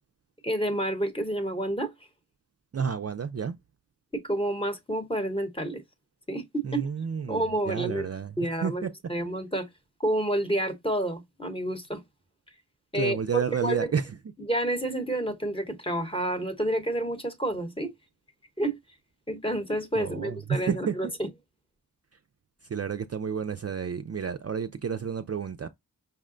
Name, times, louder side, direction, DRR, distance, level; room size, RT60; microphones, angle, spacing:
voice 1, 0.4-1.9 4.1-5.8 6.3-6.9 7.3-8.1 8.4-9.7 10.0-12.0 12.9-13.2 13.6-13.9 14.5-17.9 18.6-18.8 19.3-21.3, right 1 dB, 15° left, 0.9 m, -29 dB
voice 2, 2.7-3.6 6.6-8.3 8.6-8.9 12.9-14.0 20.0-21.1 22.7-25.7, right 7 dB, 40° right, 0.4 m, -30 dB
5.6 x 2.1 x 3.7 m
wide cardioid pair, 55°, 39 cm